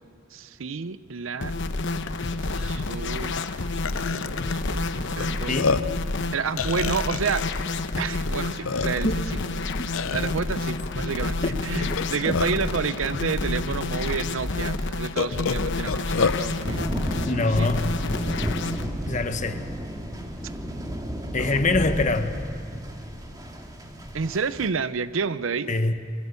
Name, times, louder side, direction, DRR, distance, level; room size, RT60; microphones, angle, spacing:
voice 1, 0.3-1.6 2.4-3.4 4.1-5.6 6.3-7.6 8.0-9.2 10.1-16.9 17.6-17.8 21.4-21.6 24.1-25.7, right 5 dB, 70° right, 0.6 m, -30 dB
sound 1, 1.4-18.9, left 2 dB, 60° left, 1.0 m, -29 dB
Burping eructation, 2.1-2.2 2.5-2.7 3.4-3.5 3.8-4.5 5.2-5.3 5.5-6.0 6.6-7.6 8.3-8.4 8.6-9.2 9.9-10.3 11.8-12.7 13.5-13.6 14.1-14.2 15.2-16.4, left 5 dB, 80° left, 0.6 m, -27 dB
sound 2, 16.6-24.7, equal, 20° right, 2.0 m, -33 dB
voice 2, 17.3-17.9 19.1-19.6 21.3-22.3 25.7-25.9, left 2 dB, 40° left, 1.2 m, -24 dB
27.0 x 21.0 x 7.0 m
head